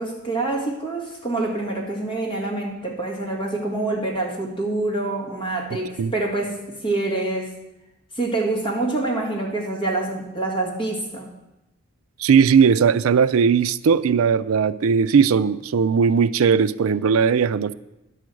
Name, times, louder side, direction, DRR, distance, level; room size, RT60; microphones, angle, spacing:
voice 1, 0.0-7.5 8.2-11.3, right 2 dB, 25° left, -2 dB, 2.0 m, -26 dB
voice 2, 12.2-17.7, right 6 dB, 70° right, 15 dB, 0.4 m, -18 dB
10.5 x 4.9 x 7.6 m, 0.98 s
head